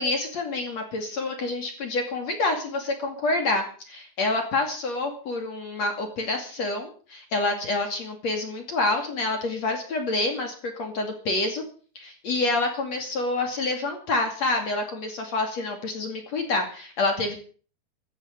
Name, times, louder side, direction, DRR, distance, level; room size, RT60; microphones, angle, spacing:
voice 1, 0.0-11.6 11.9-17.4, left 2 dB, 45° left, 4 dB, 3.3 m, -27 dB
17.5 x 13.0 x 5.3 m, 0.42 s
omnidirectional pair, 4.9 m